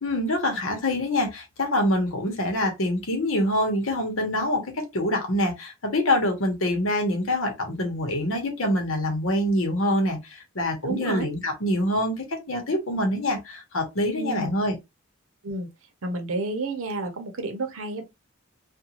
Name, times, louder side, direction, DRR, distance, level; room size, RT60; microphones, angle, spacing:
voice 1, 0.0-14.7, left 1 dB, 85° left, 1.0 m, -25 dB
voice 2, 10.8-11.3 14.1-14.5 15.4-15.7 16.0-18.0, right 2 dB, 85° right, 0.7 m, -30 dB
2.5 x 2.2 x 2.9 m
head